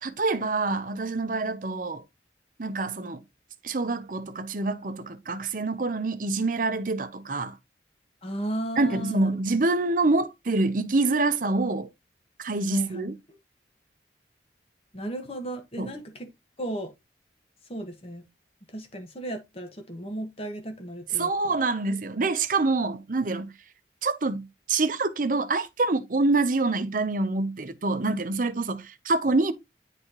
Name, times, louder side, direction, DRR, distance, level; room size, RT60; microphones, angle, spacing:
voice 1, 0.0-2.0 2.6-3.2 3.6-7.6 8.8-11.9 12.4-13.1 15.8-15.9 21.1-23.5 24.0-29.5, right 3 dB, 50° right, 0.7 m, -26 dB
voice 2, 8.2-9.3 12.7-13.1 14.9-16.3 16.6-16.9 17.7-18.2 18.7-21.3, right 1 dB, 35° left, 1.4 m, -35 dB
9.8 x 4.1 x 3.0 m
head